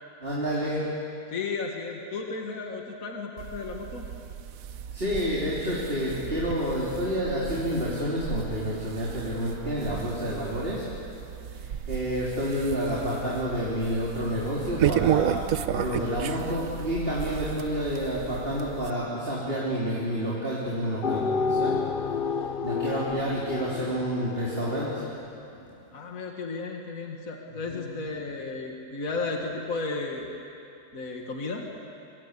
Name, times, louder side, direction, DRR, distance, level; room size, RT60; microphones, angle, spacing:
voice 1, 0.2-0.9 4.9-10.9 11.6-21.9 22.6-25.8 27.5-27.9, equal, 35° right, -7 dB, 4.2 m, -29 dB
voice 2, 1.3-4.1 25.9-30.3 30.9-31.7, left 3 dB, 60° left, 1 dB, 2.3 m, -34 dB
sound 1, 3.4-18.9, right 10 dB, 70° right, 1.2 m, -33 dB
sound 2, 21.0-25.1, left 5 dB, 45° left, 0.7 m, -30 dB
25.5 x 24.5 x 8.4 m, 2.7 s
omnidirectional pair, 1.6 m